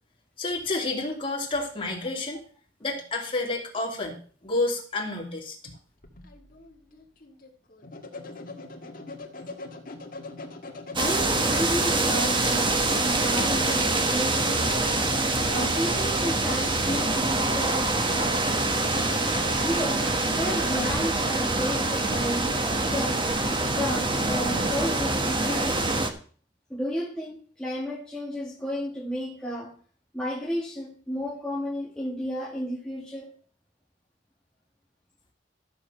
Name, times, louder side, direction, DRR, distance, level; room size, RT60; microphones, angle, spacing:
voice 1, 0.4-2.4 2.8-4.2 4.4-5.6, left 2 dB, 30° left, 0 dB, 2.9 m, -29 dB
sound 1, 5.6-21.0, left 3 dB, 50° left, 1.8 m, -41 dB
voice 2, 10.9-14.8 15.5-18.4 19.6-23.3 23.7-26.0 26.7-29.7 30.1-33.3, equal, 5° left, -4 dB, 1.8 m, -32 dB
sound 2, 11.0-26.1, right 2 dB, 25° right, 1.3 m, -25 dB
13.5 x 7.2 x 5.6 m, 0.43 s
head